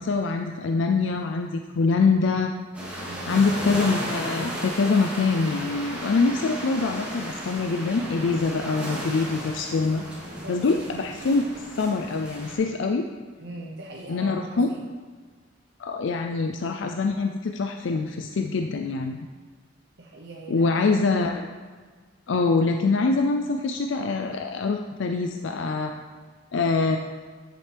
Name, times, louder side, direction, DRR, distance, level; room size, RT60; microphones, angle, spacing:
voice 1, 0.0-2.5 3.3-10.0 10.5-11.4 11.8-13.1 14.1-14.7 15.8-19.3 20.5-21.5 22.3-26.0 26.5-27.0, left 4 dB, 80° left, 5 dB, 0.4 m, -24 dB
sound 1, 2.7-12.5, equal, 5° right, 2.5 m, -34 dB
voice 2, 3.1-3.4 10.4-10.6 13.4-14.8 20.0-20.9, right 1 dB, 65° right, -2 dB, 0.8 m, -40 dB
10.0 x 7.6 x 3.4 m, 1.5 s
head